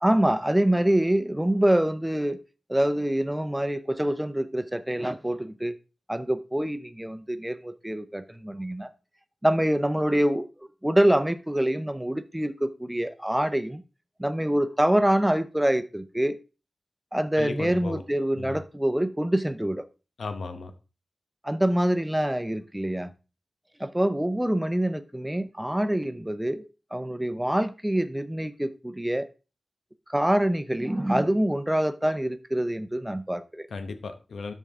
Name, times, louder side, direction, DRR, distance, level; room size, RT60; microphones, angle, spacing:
voice 1, 0.0-2.4 2.7-5.8 6.1-8.9 9.4-10.5 10.8-13.8 14.2-16.4 17.1-19.8 21.4-23.1 23.8-29.3 30.1-33.7, right 1 dB, 5° right, 0.7 m, -25 dB
voice 2, 17.4-18.0 18.4-18.6 20.2-20.7 33.7-34.5, left 4 dB, 85° left, 1.0 m, -35 dB
12.5 x 4.7 x 3.7 m
wide cardioid pair, 105°, 0 cm